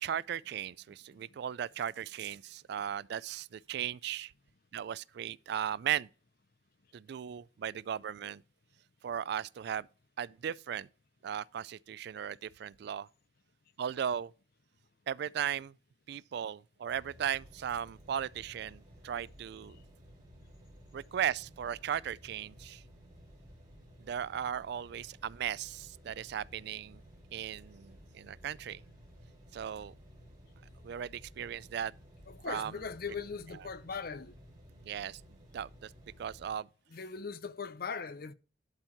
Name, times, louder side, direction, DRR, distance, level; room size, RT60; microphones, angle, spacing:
voice 1, 0.0-4.3 4.7-6.1 6.9-8.4 9.0-9.9 10.2-10.9 11.2-13.1 13.8-14.3 15.1-15.8 16.1-19.8 20.9-22.8 24.0-27.0 27.3-28.8 29.5-29.9 30.8-31.9 32.5-32.7 34.8-35.2 35.5-35.9 36.2-36.7, right 9 dB, 60° right, 0.3 m, -37 dB
sound 1, 16.9-36.5, equal, 25° right, 3.4 m, -56 dB
voice 2, 32.3-34.3 36.9-38.3, left 5 dB, 50° left, 0.6 m, -40 dB
11.5 x 4.4 x 4.5 m
head